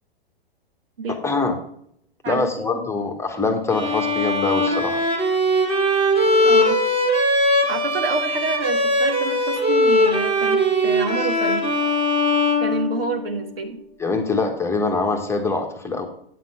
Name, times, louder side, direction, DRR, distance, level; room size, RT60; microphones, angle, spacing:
voice 1, 1.1-1.6 2.3-5.0 14.0-16.1, left 3 dB, 10° left, 3 dB, 1.3 m, -23 dB
Bowed string instrument, 3.7-13.4, left 1 dB, 20° right, 2.2 m, -20 dB
voice 2, 6.4-6.8 7.7-11.7 12.6-13.8, right 3 dB, 70° right, 5 dB, 1.7 m, -28 dB
9.2 x 5.9 x 5.6 m, 0.68 s
figure-of-eight pair, 105°, 30 cm